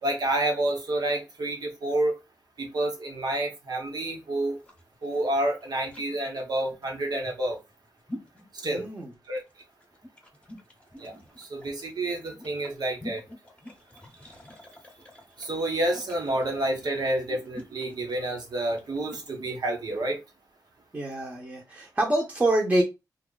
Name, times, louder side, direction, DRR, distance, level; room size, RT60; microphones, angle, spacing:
voice 1, 0.0-2.1 2.6-4.6 5.0-7.6 8.6-8.9 9.3-9.4 11.0-13.2 15.4-20.2, right 1 dB, 80° right, 1.1 m, -29 dB
sound 1, 4.5-19.3, left 1 dB, 20° left, 0.8 m, -47 dB
voice 2, 8.6-9.1 20.9-22.8, right 1 dB, 25° right, 0.8 m, -26 dB
2.7 x 2.3 x 3.8 m
wide cardioid pair, 105°, 7 cm